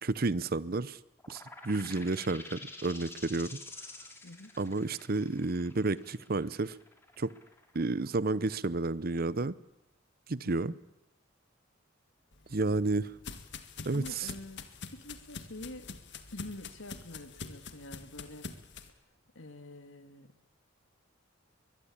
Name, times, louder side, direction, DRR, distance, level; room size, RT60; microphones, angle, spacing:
voice 1, 0.0-1.0 1.3-3.6 4.6-6.8 7.2-7.3 7.7-9.6 10.3-10.7 12.5-13.1 13.9-14.0, right 3 dB, 50° right, 18 dB, 0.8 m, -31 dB
sound 1, 1.2-8.5, left 2 dB, 10° left, 3.1 m, -49 dB
voice 2, 4.2-4.5 10.4-10.8 13.9-14.6 14.9-16.0 16.3-18.5 19.3-20.3, left 1 dB, 80° left, 9 dB, 2.4 m, -46 dB
sound 2, 12.3-18.9, left 4 dB, 60° left, 1.9 m, -46 dB
22.0 x 22.0 x 8.7 m, 0.94 s
head